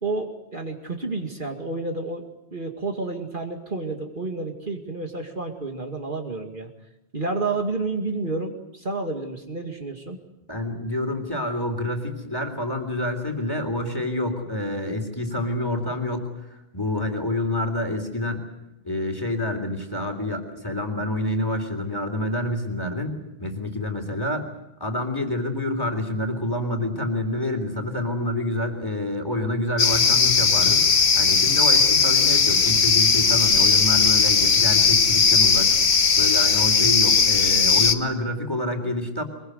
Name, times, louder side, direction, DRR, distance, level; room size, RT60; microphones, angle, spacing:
voice 1, 0.0-2.3 2.5-6.7 7.1-10.2, right 3 dB, 50° right, 3 dB, 2.5 m, -30 dB
voice 2, 10.5-16.5 16.7-18.5 18.8-24.4 24.8-35.7 36.1-39.2, left 1 dB, 20° left, 5 dB, 3.4 m, -27 dB
sound 1, 29.8-37.9, left 5 dB, 70° left, 1.5 m, -18 dB
23.5 x 22.5 x 8.0 m, 0.90 s
omnidirectional pair, 1.1 m